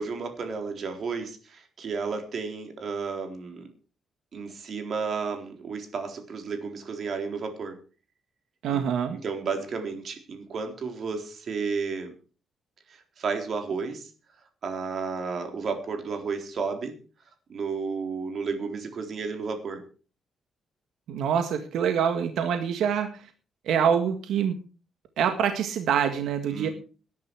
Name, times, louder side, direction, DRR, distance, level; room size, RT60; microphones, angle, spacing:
voice 1, 0.0-3.7 4.3-7.8 8.7-8.8 9.1-12.1 12.9-14.1 14.6-17.0 17.5-19.8 26.5-26.7, right 5 dB, 45° right, 5 dB, 3.9 m, -32 dB
voice 2, 8.6-9.2 21.1-23.3 23.7-24.6 25.2-26.7, right 8 dB, 80° right, 7 dB, 1.8 m, -25 dB
18.5 x 10.5 x 4.7 m, 0.36 s
cardioid pair, 150°, 0 cm